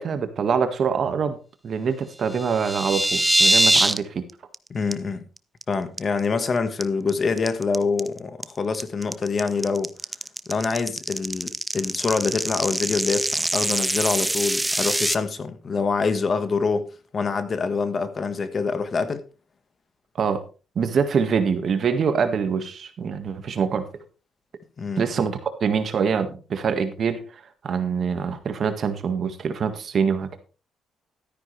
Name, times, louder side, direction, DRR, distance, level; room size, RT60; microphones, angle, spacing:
voice 1, 0.0-1.4 1.6-4.2 20.2-20.4 20.8-24.0 25.0-27.2 27.6-30.4, right 6 dB, 55° right, 1.7 m, -24 dB
sound 1, 2.3-4.0 4.3-4.6 4.9-5.0 5.4-5.6 6.0-6.4 6.8-15.1, right 1 dB, 10° right, 0.7 m, -23 dB
voice 2, 4.7-5.2 5.7-9.9 10.5-19.2 24.8-25.1, left 4 dB, 40° left, 1.5 m, -25 dB
13.0 x 9.7 x 3.3 m
cardioid pair, 90°, 0 cm